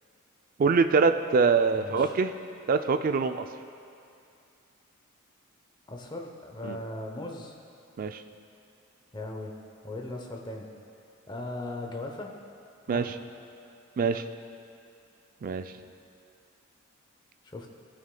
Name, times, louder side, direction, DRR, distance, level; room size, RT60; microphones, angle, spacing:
voice 1, 0.6-2.3 2.7-3.5 6.6-6.8 8.0-8.2 12.9-13.1 14.0-14.2 15.4-15.7, right 4 dB, 40° right, 9 dB, 0.3 m, -24 dB
voice 2, 1.8-2.1 5.9-7.6 9.1-9.5 9.8-10.7 11.3-12.4 12.9-13.1 15.8-15.9 17.4-17.7, left 2 dB, 20° left, 1 dB, 0.7 m, -38 dB
17.5 x 6.5 x 2.2 m, 2.5 s
head